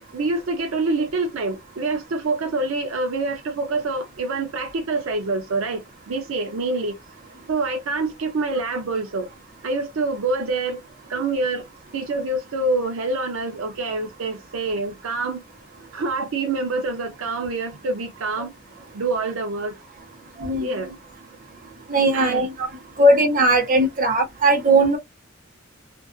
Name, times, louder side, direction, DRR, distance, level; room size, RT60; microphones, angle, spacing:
voice 1, 0.1-7.0 7.5-9.3 9.6-10.8 11.1-11.6 11.9-15.4 15.9-18.5 18.9-19.8 20.6-21.0 22.1-22.5, right 3 dB, 85° right, 0.5 m, -26 dB
voice 2, 21.9-22.5 23.0-25.0, right 1 dB, 45° right, 0.8 m, -18 dB
2.4 x 2.3 x 2.4 m
head